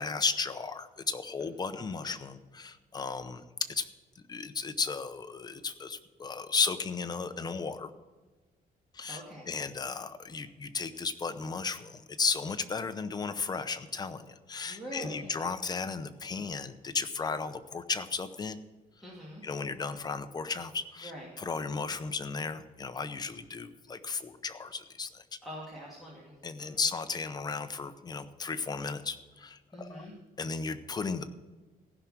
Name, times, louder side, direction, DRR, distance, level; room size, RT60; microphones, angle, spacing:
voice 1, 0.0-3.4 3.8-3.9 4.3-7.9 8.9-18.6 19.4-21.1 21.4-25.2 26.4-30.1 30.4-31.2, left 4 dB, 25° left, 10 dB, 0.7 m, -34 dB
voice 2, 1.7-2.2 9.0-9.6 14.7-15.3 19.0-19.4 21.0-21.3 25.4-26.3 26.6-26.8 29.7-30.1, equal, ahead, -8 dB, 2.5 m, -44 dB
15.5 x 6.0 x 7.6 m, 1.2 s
cardioid pair, 150°, 15 cm